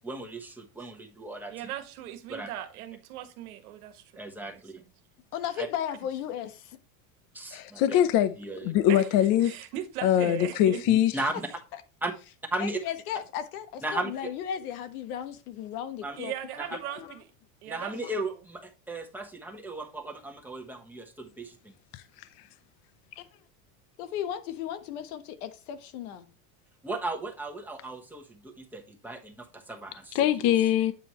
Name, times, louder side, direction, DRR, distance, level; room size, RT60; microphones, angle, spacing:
voice 1, 0.0-1.5 2.3-2.5 4.1-4.8 5.6-5.7 7.3-8.0 8.4-8.7 10.2-10.3 10.9-11.3 12.0-12.1 12.5-12.8 13.8-14.3 16.0-16.2 16.6-16.8 17.7-21.7 26.8-30.2, right 2 dB, 5° right, 1.2 m, -36 dB
voice 2, 1.5-4.6 8.9-9.1 9.4-10.8 16.2-17.2 17.6-17.9, right 12 dB, 85° right, 1.4 m, -38 dB
voice 3, 5.3-6.8 12.6-16.3 16.8-17.1 18.0-18.1 24.0-26.3, left 9 dB, 85° left, 1.3 m, -35 dB
voice 4, 7.5-8.3 8.6-9.5 10.0-11.1 21.9-22.0 23.2-23.3 30.1-30.9, left 11 dB, 50° left, 0.7 m, -23 dB
9.1 x 5.0 x 3.1 m
supercardioid pair, 135°, 43 cm